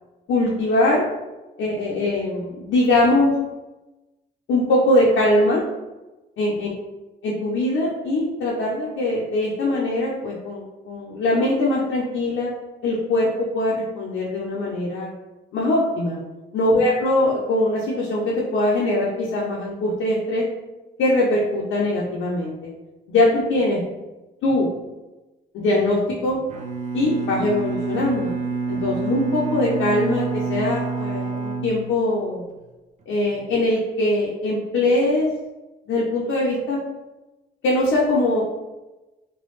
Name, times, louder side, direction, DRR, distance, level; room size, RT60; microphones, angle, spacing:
voice 1, 0.3-1.1 1.6-3.4 4.5-5.6 6.4-6.7 7.2-12.5 12.8-15.1 15.5-16.2 16.5-20.4 21.0-22.5 23.1-23.8 24.4-24.7 25.5-26.4 26.9-28.3 28.7-32.4 33.1-35.3 35.9-36.8 37.6-38.4, left 1 dB, 70° left, -5 dB, 0.6 m, -21 dB
Bowed string instrument, 26.5-32.5, right 4 dB, 35° right, 0.4 m, -28 dB
3.1 x 2.3 x 3.1 m, 1.1 s
cardioid pair, 90°, 20 cm